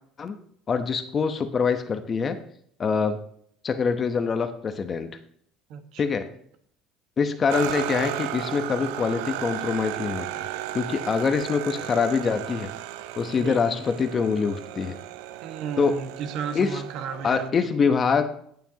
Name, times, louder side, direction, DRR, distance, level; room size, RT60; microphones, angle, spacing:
voice 1, 0.7-2.4 2.8-3.2 3.6-5.1 6.0-6.3 7.2-10.3 10.7-12.7 13.2-15.0 15.8-16.0 16.5-16.8 17.2-18.2, left 5 dB, 30° left, 1.0 m, -24 dB
voice 2, 5.7-6.0 13.3-13.6 15.4-17.5, right 7 dB, 65° right, 1.4 m, -34 dB
sound 1, 7.5-17.5, right 13 dB, 90° right, 0.5 m, -34 dB
18.5 x 7.0 x 2.9 m
cardioid pair, 120°, 0 cm